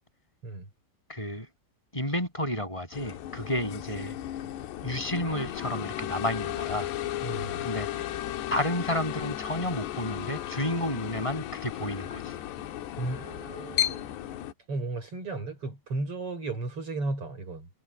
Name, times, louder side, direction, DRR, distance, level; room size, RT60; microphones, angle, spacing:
voice 1, 1.1-1.5 1.9-4.2 4.8-6.9 7.6-8.1 8.5-12.4, left 1 dB, 5° left, 7.3 m, -31 dB
sound 1, 2.9-14.5, left 12 dB, 90° left, 3.4 m, -35 dB
voice 2, 7.2-7.6 13.0-14.1 14.7-17.7, right 2 dB, 35° right, 6.0 m, -34 dB
omnidirectional pair, 4.8 m